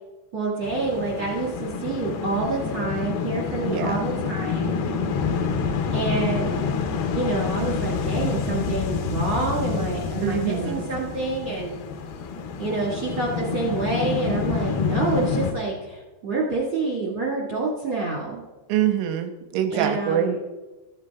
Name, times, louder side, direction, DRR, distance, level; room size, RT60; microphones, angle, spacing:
voice 1, 0.3-4.8 5.9-6.6 7.1-11.8 12.6-18.4 19.7-20.3, right 3 dB, 55° right, -4 dB, 1.4 m, -27 dB
sound 1, 0.6-15.5, left 5 dB, 80° left, 2.2 m, -27 dB
voice 2, 3.7-4.1 10.2-10.8 18.7-20.4, right 9 dB, 85° right, 6 dB, 3.1 m, -25 dB
14.5 x 10.5 x 2.3 m, 1.1 s
omnidirectional pair, 5.5 m